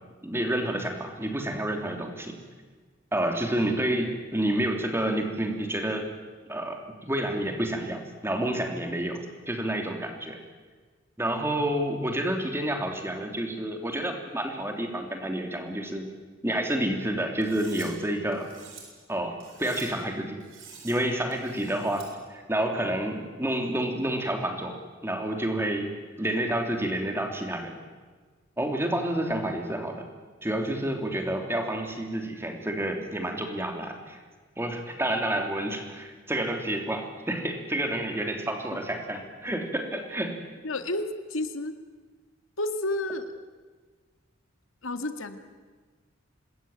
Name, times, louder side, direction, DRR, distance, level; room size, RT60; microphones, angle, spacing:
voice 1, 0.2-2.4 3.1-6.1 6.5-10.4 11.2-16.0 16.4-18.5 19.1-20.4 20.8-27.7 28.6-30.0 30.4-34.2 34.6-40.4, right 1 dB, 10° right, 3 dB, 3.1 m, -29 dB
Cutlery silverware, 17.4-17.9 18.3-18.8 19.4-19.9 20.4-20.9 21.3-22.1, right 6 dB, 75° right, 7.2 m, -47 dB
voice 2, 40.6-41.7 42.6-43.3 44.8-45.4, left 1 dB, 85° left, 8 dB, 2.0 m, -30 dB
26.5 x 20.0 x 9.1 m, 1.4 s
head